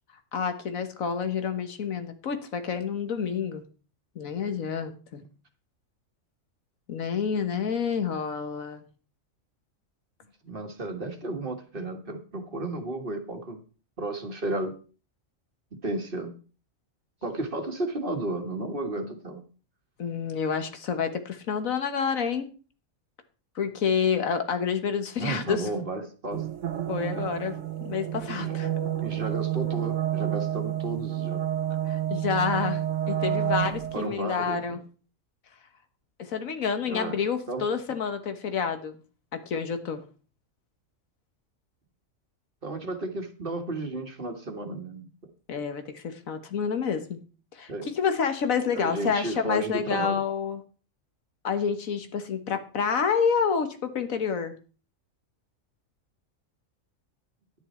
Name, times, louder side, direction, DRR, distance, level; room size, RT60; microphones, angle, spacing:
voice 1, 0.3-3.6 4.1-5.2 6.9-8.9 20.0-22.5 23.5-25.7 26.9-28.7 31.9-34.8 36.2-39.0 39.3-40.0 45.5-47.2 47.5-50.6 51.4-54.5, left 6 dB, 90° left, 8 dB, 1.7 m, -28 dB
voice 2, 10.4-13.6 14.0-14.7 15.8-16.3 17.2-19.4 25.2-26.5 28.3-28.6 29.0-31.4 33.9-34.8 36.9-37.2 37.5-37.6 42.6-45.0 47.7-47.9 48.7-50.2, right 2 dB, 40° right, 4 dB, 1.7 m, -33 dB
sound 1, 26.3-34.0, right 11 dB, 70° right, 1.1 m, -29 dB
10.5 x 9.7 x 4.4 m, 0.37 s
omnidirectional pair, 1.4 m